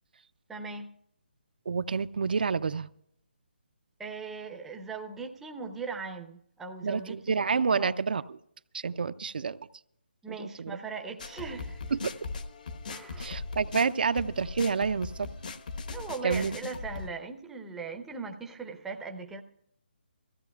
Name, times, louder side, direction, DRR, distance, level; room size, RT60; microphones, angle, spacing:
voice 1, 0.5-0.9 4.0-7.4 7.7-7.9 10.2-11.8 12.9-13.3 15.9-19.4, right 4 dB, 5° right, 3 dB, 0.6 m, -39 dB
voice 2, 1.7-2.9 6.8-8.4 8.7-9.6 10.3-10.8 11.9-12.1 13.2-15.3 16.2-16.6, right 5 dB, 60° right, 13 dB, 0.5 m, -29 dB
sound 1, 11.2-17.1, left 4 dB, 50° left, 1.1 m, -39 dB
23.0 x 16.0 x 2.3 m, 0.71 s
hypercardioid pair, 165°, 6 cm